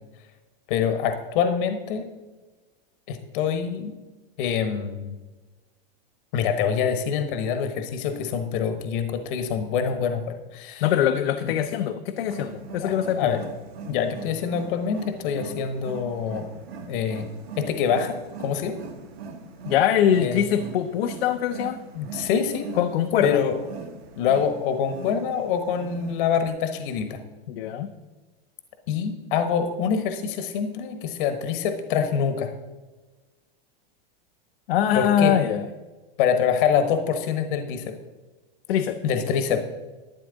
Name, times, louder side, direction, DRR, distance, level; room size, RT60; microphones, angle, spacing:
voice 1, 0.7-2.0 3.1-3.9 4.4-5.1 6.3-10.8 11.4-11.5 12.8-13.4 13.9-16.5 16.9-17.3 17.6-18.2 18.4-18.8 20.2-20.5 21.9-22.7 23.2-23.6 24.2-27.2 28.9-32.5 34.9-35.3 36.2-37.9 39.0-39.7, left 7 dB, 55° left, 8 dB, 1.1 m, -25 dB
voice 2, 10.8-13.4 19.7-21.8 22.8-23.4 27.5-27.9 34.7-35.7 38.7-39.0, left 9 dB, 75° left, 6 dB, 0.8 m, -23 dB
Wild animals, 12.2-26.5, right 5 dB, 90° right, 1.7 m, -40 dB
12.0 x 9.2 x 3.9 m, 1.2 s
supercardioid pair, 140°, 30 cm